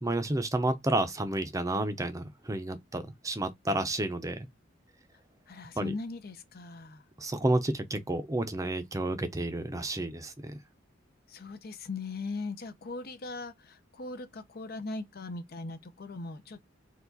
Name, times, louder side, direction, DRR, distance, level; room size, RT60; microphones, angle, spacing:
voice 1, 0.0-4.5 5.8-5.9 7.2-10.6, right 2 dB, 15° right, 0.6 m, -31 dB
voice 2, 5.5-7.0 11.3-16.6, left 3 dB, 55° left, 0.7 m, -39 dB
4.6 x 2.4 x 3.9 m
head